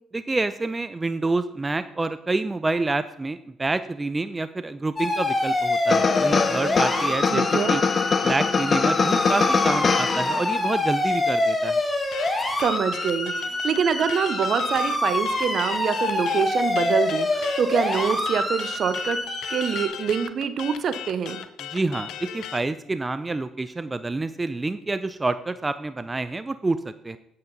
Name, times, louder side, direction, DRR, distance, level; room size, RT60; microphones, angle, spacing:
voice 1, 0.1-7.8 8.2-11.8 21.7-27.2, right 3 dB, 20° right, 12 dB, 0.5 m, -28 dB
sound 1, 5.0-19.9, left 1 dB, 15° left, 2.5 m, -26 dB
sound 2, 5.9-10.7, left 5 dB, 40° left, 0.6 m, -23 dB
voice 2, 7.3-7.8 12.6-19.2 19.5-21.4, right 7 dB, 60° right, 12 dB, 0.8 m, -25 dB
sound 3, 12.1-22.7, left 10 dB, 75° left, 0.7 m, -37 dB
9.0 x 8.5 x 4.0 m, 0.79 s
supercardioid pair, 65°, 0 cm